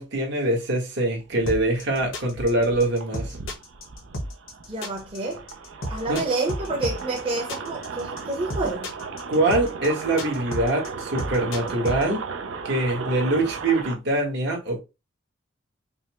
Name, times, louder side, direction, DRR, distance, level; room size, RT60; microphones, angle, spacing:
voice 1, 0.0-3.3 6.1-6.2 9.3-12.2 12.6-14.8, right 2 dB, 60° right, 1.4 m, -24 dB
sound 1, 1.2-14.0, right 5 dB, 80° right, 0.6 m, -36 dB
sound 2, 1.5-12.0, left 1 dB, 90° left, 1.2 m, -32 dB
voice 2, 4.7-5.4 5.9-8.9, right 3 dB, 30° right, 0.9 m, -28 dB
5.4 x 2.1 x 3.0 m
head